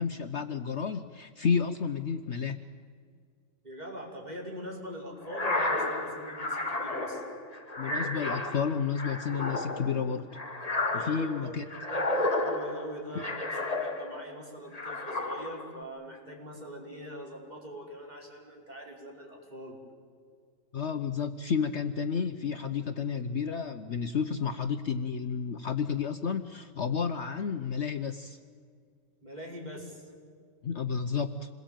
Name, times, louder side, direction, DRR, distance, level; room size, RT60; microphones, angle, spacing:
voice 1, 0.0-2.6 7.8-10.3 10.9-11.7 13.1-13.2 20.7-28.4 30.6-31.5, left 6 dB, 55° left, 9 dB, 1.0 m, -31 dB
voice 2, 3.6-7.2 10.9-19.7 29.2-30.1, equal, 30° right, -1 dB, 5.4 m, -43 dB
sound 1, 5.2-14.3 14.7-15.8, left 2 dB, 25° left, 1.9 m, -32 dB
27.5 x 21.5 x 9.1 m, 2.1 s
omnidirectional pair, 1.5 m